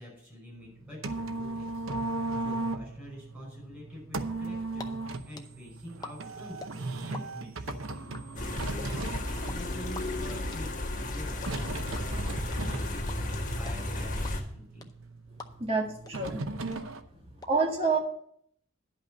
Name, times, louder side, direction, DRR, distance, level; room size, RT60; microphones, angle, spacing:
voice 1, 0.0-2.1 2.4-12.3 12.6-13.0 13.3-14.9 17.2-17.4, equal, 10° right, -3 dB, 5.4 m, -47 dB
sound 1, 0.6-17.0, right 2 dB, 80° right, 0.8 m, -38 dB
sound 2, 4.8-4.9 5.1-7.2 7.5-15.8 16.1-16.2 16.4-17.5, left 3 dB, 20° left, 0.6 m, -45 dB
sound 3, 8.4-14.4, left 1 dB, 40° left, 1.5 m, -33 dB
voice 2, 15.6-16.4 17.5-18.0, right 4 dB, 25° right, 0 dB, 1.9 m, -27 dB
10.5 x 5.6 x 6.6 m, 0.67 s
head